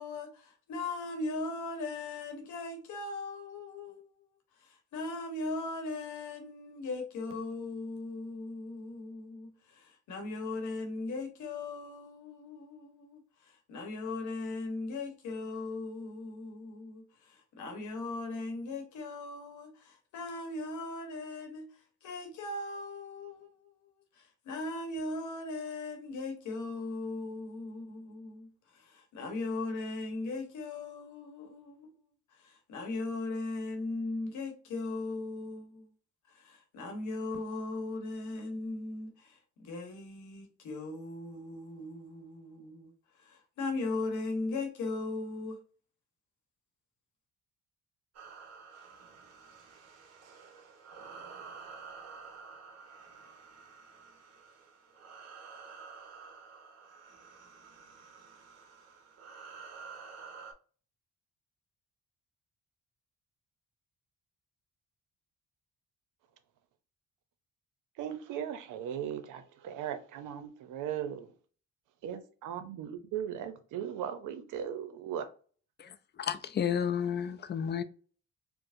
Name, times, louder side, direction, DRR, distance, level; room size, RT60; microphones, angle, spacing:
voice 1, 0.0-4.0 4.9-13.2 13.7-17.0 17.5-21.7 22.0-23.7 24.4-28.5 28.7-31.9 32.4-35.9 36.4-42.9 43.3-45.6, left 2 dB, 75° left, 1.1 m, -38 dB
sound 1, 48.1-60.5, right 5 dB, 55° right, 1.0 m, -50 dB
voice 2, 68.0-71.3 72.0-75.3, right 9 dB, 85° right, 0.7 m, -38 dB
voice 3, 75.8-77.8, left 8 dB, 35° left, 0.4 m, -32 dB
4.6 x 2.0 x 2.5 m
cardioid pair, 90°, 30 cm